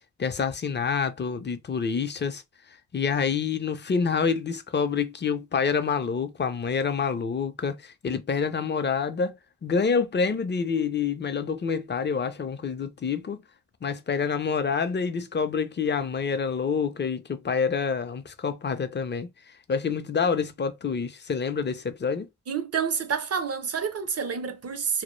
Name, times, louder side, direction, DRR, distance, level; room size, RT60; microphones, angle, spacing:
voice 1, 0.2-2.4 2.9-13.4 13.8-19.3 19.7-22.3, left 5 dB, 35° left, 0.5 m, -27 dB
voice 2, 22.5-25.0, right 6 dB, 50° right, 0.5 m, -28 dB
2.1 x 2.0 x 3.0 m
cardioid pair, 60°, 32 cm